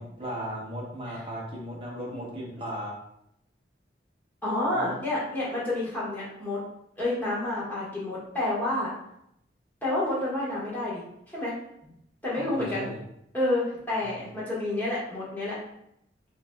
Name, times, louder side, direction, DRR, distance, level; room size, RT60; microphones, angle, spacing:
voice 1, 0.0-3.0 4.7-4.9 11.8-11.9 12.4-13.0 14.0-14.2, equal, 30° right, -3 dB, 1.1 m, -37 dB
voice 2, 4.4-6.6 7.0-8.9 9.8-11.5 12.2-12.9 13.3-15.6, left 1 dB, 10° left, -8 dB, 1.6 m, -29 dB
5.5 x 3.3 x 2.3 m, 0.77 s
head